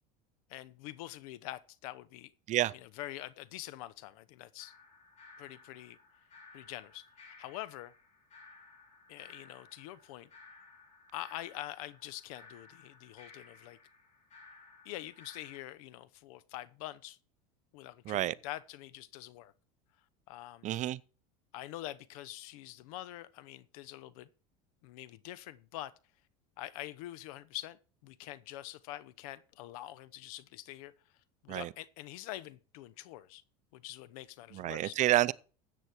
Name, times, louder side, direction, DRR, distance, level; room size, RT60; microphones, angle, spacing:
voice 1, 0.5-2.3 2.7-4.7 5.4-6.0 6.5-7.9 9.1-10.3 11.1-13.8 14.8-17.2 17.7-19.5 20.3-20.7 21.5-24.3 24.8-25.9 26.6-30.9 31.4-33.4 33.7-34.9, left 15 dB, 75° left, 0.9 m, -45 dB
sound 1, 4.6-15.6, left 3 dB, 40° left, 4.2 m, -57 dB
voice 2, 20.6-21.0 31.5-31.7 34.5-35.3, right 14 dB, 40° right, 0.5 m, -29 dB
13.5 x 8.3 x 4.6 m
supercardioid pair, 105°, 19 cm